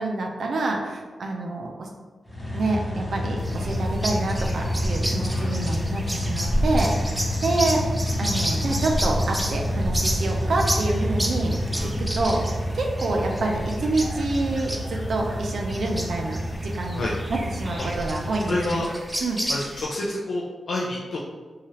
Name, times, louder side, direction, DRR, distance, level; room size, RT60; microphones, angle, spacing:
voice 1, 0.0-1.9 2.5-7.8 8.2-11.5 12.0-12.4 12.7-17.0 17.3-18.8 19.2-19.5, right 2 dB, 70° right, 1 dB, 0.4 m, -27 dB
sound 1, 2.3-18.9, equal, 15° left, 0.8 m, -28 dB
sound 2, 3.4-19.8, right 1 dB, 10° right, 0.4 m, -31 dB
voice 2, 11.7-12.0 16.9-17.1 18.5-18.9 19.5-21.2, left 2 dB, 70° left, -5 dB, 0.4 m, -29 dB
2.8 x 2.3 x 3.0 m, 1.4 s
wide cardioid pair, 110°, 0 cm